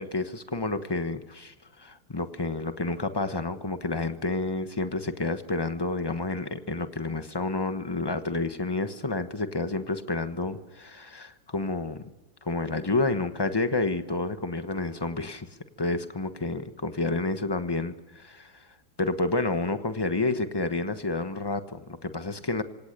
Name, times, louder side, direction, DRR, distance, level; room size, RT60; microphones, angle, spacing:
voice 1, 0.0-12.0 12.4-15.5 15.8-18.7 19.0-22.6, left 3 dB, 15° left, 9 dB, 0.9 m, -29 dB
26.0 x 17.5 x 6.7 m, 1.1 s
omnidirectional pair, 2.1 m